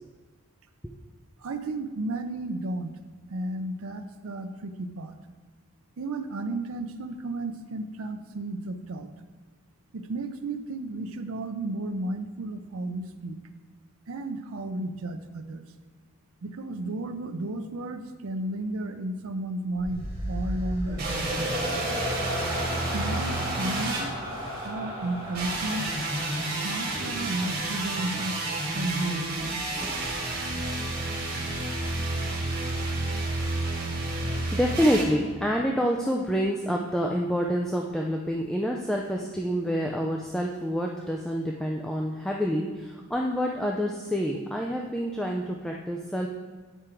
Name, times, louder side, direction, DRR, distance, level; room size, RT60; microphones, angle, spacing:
voice 1, 1.4-3.0 3.3-5.2 6.0-9.1 9.9-13.4 14.1-15.7 16.4-21.9 22.9-24.1 24.6-25.9 26.6-28.4 28.7-29.6 45.2-45.3, right 2 dB, 70° right, 7 dB, 0.5 m, -33 dB
sound 1, 19.8-27.1, equal, 25° left, 2.3 m, -34 dB
sound 2, 21.0-24.7 25.3-35.0, right 2 dB, 45° right, 1.7 m, -30 dB
voice 2, 34.3-46.3, equal, ahead, -1 dB, 0.4 m, -27 dB
9.1 x 4.9 x 4.5 m, 1.5 s
head